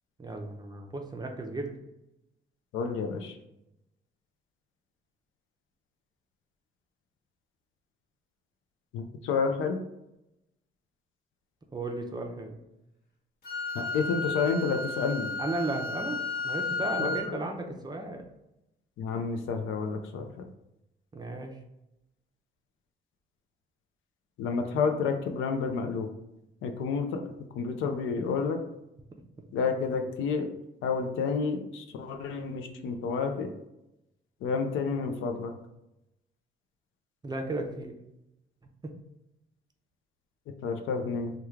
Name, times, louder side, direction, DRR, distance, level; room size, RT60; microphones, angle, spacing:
voice 1, 0.2-1.7 11.7-12.6 15.4-18.2 21.1-21.6 37.2-37.9 38.8-38.9, right 2 dB, 20° right, 3 dB, 0.5 m, -35 dB
voice 2, 2.7-3.3 8.9-9.8 13.7-15.3 17.0-17.4 19.0-20.3 24.4-26.1 26.6-27.2 27.6-28.6 29.5-30.5 30.8-33.5 34.4-35.5 40.6-41.3, left 5 dB, 85° left, 5 dB, 0.5 m, -30 dB
Wind instrument woodwind instrument, 13.4-17.3, left 3 dB, 50° left, 1.0 m, -33 dB
3.0 x 2.3 x 3.5 m, 0.89 s
cardioid pair, 90°, 20 cm